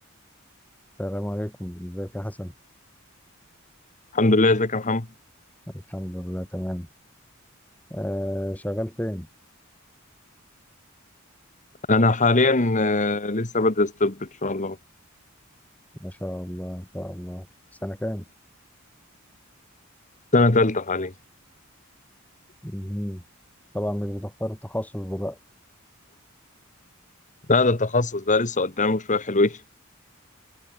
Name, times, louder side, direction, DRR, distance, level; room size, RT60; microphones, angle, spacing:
voice 1, 1.0-2.5 5.7-6.9 7.9-9.3 16.0-18.2 22.6-23.2 23.7-25.4, equal, 5° left, 2.8 m, -31 dB
voice 2, 4.1-5.1 11.9-14.8 20.3-21.1 27.5-29.6, left 2 dB, 35° left, 1.6 m, -21 dB
head